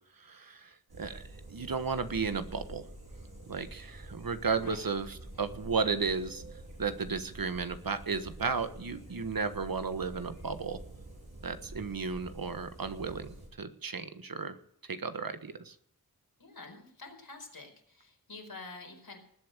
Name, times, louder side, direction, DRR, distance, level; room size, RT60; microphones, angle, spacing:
voice 1, 0.2-1.2 1.5-2.9 3.5-6.4 6.8-10.8 11.4-14.6 14.8-15.7, right 5 dB, 65° right, 10 dB, 1.3 m, -34 dB
sound 1, 0.9-13.5, right 1 dB, 85° right, 5.4 m, -48 dB
voice 2, 16.4-19.2, left 3 dB, 75° left, 2 dB, 4.7 m, -48 dB
19.5 x 8.2 x 6.7 m, 0.65 s
wide cardioid pair, 55°, 36 cm